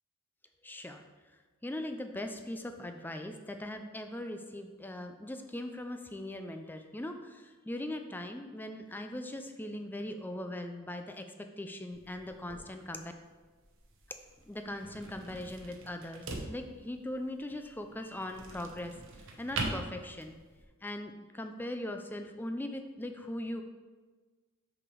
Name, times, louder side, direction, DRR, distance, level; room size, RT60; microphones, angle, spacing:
voice 1, 0.6-1.0 1.6-13.0 14.5-20.4 20.8-23.6, left 1 dB, 10° left, 6 dB, 0.4 m, -40 dB
sound 1, 11.9-20.6, right 2 dB, 60° right, 0.9 m, -43 dB
6.1 x 4.9 x 4.7 m, 1.3 s
head